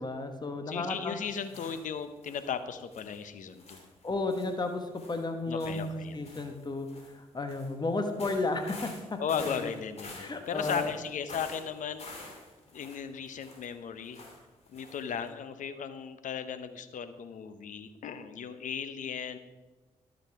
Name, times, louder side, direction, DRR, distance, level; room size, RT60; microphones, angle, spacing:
voice 1, 0.0-1.2 4.0-9.7 10.1-10.9, left 2 dB, 30° left, 6 dB, 1.3 m, -33 dB
voice 2, 0.7-3.9 5.5-6.4 9.2-12.1 12.7-14.2 14.7-19.4, left 7 dB, 60° left, 11 dB, 0.8 m, -36 dB
sound 1, 1.3-2.5 2.9-3.2 3.5-7.1 7.5-7.7 8.0-13.7 14.0-14.4 14.7-15.0 15.3-15.4, left 2 dB, 45° left, 2.7 m, -47 dB
12.0 x 6.4 x 4.8 m, 1.2 s
hypercardioid pair, 45°, 15 cm